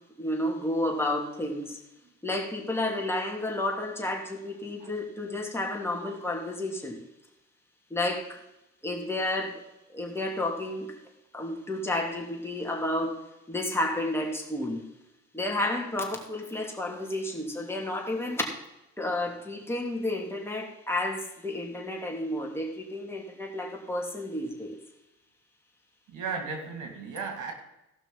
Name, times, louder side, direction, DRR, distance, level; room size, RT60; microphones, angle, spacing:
voice 1, 0.2-1.8 2.2-7.0 7.9-8.4 8.8-9.6 9.9-11.0 11.3-13.2 13.5-14.8 15.3-18.4 19.0-24.8, left 1 dB, 10° left, 0 dB, 2.9 m, -31 dB
voice 2, 26.1-27.5, right 5 dB, 90° right, 4 dB, 2.4 m, -35 dB
16.5 x 5.9 x 5.4 m, 0.91 s
cardioid pair, 90°, 30 cm